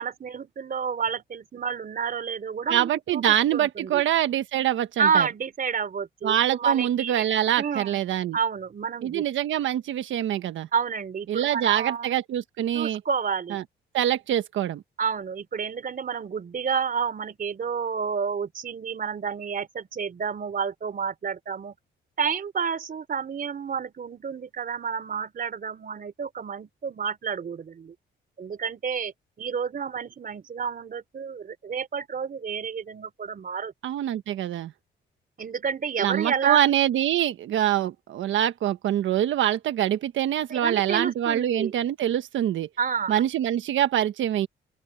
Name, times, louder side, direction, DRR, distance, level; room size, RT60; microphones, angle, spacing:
voice 1, 0.0-3.2 3.5-4.0 5.0-7.2 7.6-8.0 8.3-9.2 10.7-12.2 12.7-13.6 15.0-21.8 22.2-28.0 28.4-33.7 35.4-36.6 40.5-41.7 42.8-43.2, right 6 dB, 45° right, 3.7 m, -29 dB
voice 2, 2.7-5.3 6.2-8.4 9.0-10.7 11.3-13.0 13.5-13.6 13.9-14.8 33.8-34.7 36.0-42.7 43.1-44.5, right 11 dB, 75° right, 1.3 m, -25 dB
open air
cardioid pair, 90°, 20 cm